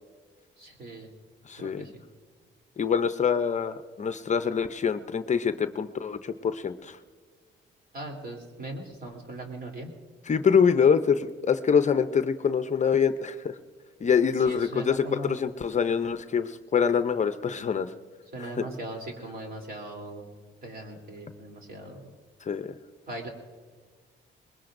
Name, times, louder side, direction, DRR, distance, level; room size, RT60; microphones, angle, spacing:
voice 1, 0.6-1.1 1.6-2.0 7.9-9.9 14.4-15.4 18.3-20.3 20.6-22.1 23.1-23.3, right 1 dB, 50° right, 1 dB, 3.3 m, -39 dB
voice 2, 1.5-1.9 2.8-7.0 10.3-13.5 14.0-17.9 18.4-18.5 22.4-22.8, left 6 dB, 35° left, 10 dB, 0.6 m, -25 dB
22.5 x 20.5 x 2.6 m, 1.5 s
cardioid pair, 90°, 20 cm